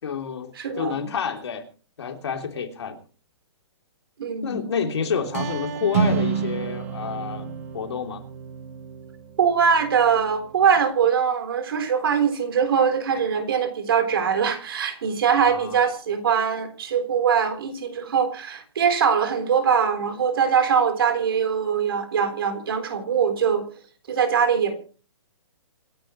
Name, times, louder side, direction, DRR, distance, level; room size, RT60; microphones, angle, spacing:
voice 1, 0.0-1.7 2.0-3.0 4.4-8.2 15.3-15.8, left 6 dB, 60° left, 4 dB, 3.0 m, -29 dB
voice 2, 0.6-0.9 4.2-4.6 9.4-23.7 24.1-24.8, right 7 dB, 50° right, 7 dB, 3.9 m, -22 dB
sound 1, 5.2-10.8, right 6 dB, 30° right, 1.2 m, -29 dB
27.0 x 11.0 x 3.1 m, 0.39 s
hypercardioid pair, 175°, 16 cm